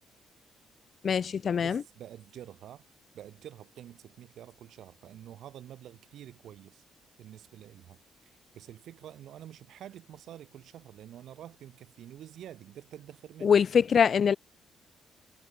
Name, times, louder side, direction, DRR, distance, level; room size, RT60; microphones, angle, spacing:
voice 1, 1.0-1.8 13.4-14.4, left 7 dB, 50° left, 0.4 m, -23 dB
voice 2, 1.6-2.9 3.1-6.8 7.2-13.6, right 11 dB, 75° right, 3.1 m, -48 dB
cardioid pair, 90°, 0 cm